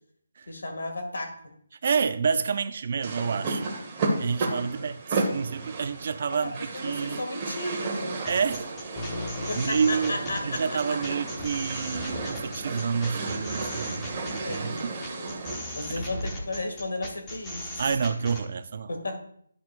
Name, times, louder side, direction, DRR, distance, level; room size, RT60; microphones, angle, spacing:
voice 1, 0.5-1.4 4.8-4.9 6.3-8.2 9.5-11.2 14.4-15.3 15.8-18.0 18.9-19.2, left 2 dB, 80° left, 4 dB, 2.0 m, -34 dB
voice 2, 1.8-3.7 4.2-7.2 8.2-8.7 9.5-14.9 17.8-18.9, right 6 dB, 40° right, 11 dB, 0.4 m, -29 dB
sound 1, 3.0-15.8, right 3 dB, 20° right, 1.2 m, -33 dB
sound 2, 8.2-18.4, left 1 dB, 15° left, 0.9 m, -37 dB
11.0 x 6.0 x 2.5 m, 0.66 s
hypercardioid pair, 175°, 0 cm